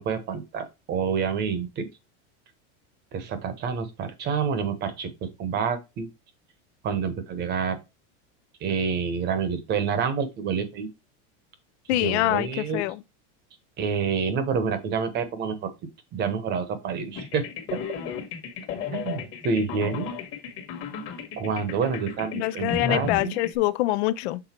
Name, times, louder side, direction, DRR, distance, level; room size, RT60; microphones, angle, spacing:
voice 1, 0.0-1.9 3.1-6.1 6.8-7.8 8.6-10.9 11.9-12.9 13.8-15.7 16.1-17.4 17.7-17.8 18.9-20.1 21.4-23.3, right 6 dB, 30° right, 0.9 m, -28 dB
voice 2, 11.9-13.0 22.3-24.4, left 16 dB, 65° left, 0.6 m, -25 dB
sound 1, 17.1-23.6, left 7 dB, 35° left, 1.4 m, -34 dB
6.1 x 3.8 x 4.3 m
supercardioid pair, 160°, 35 cm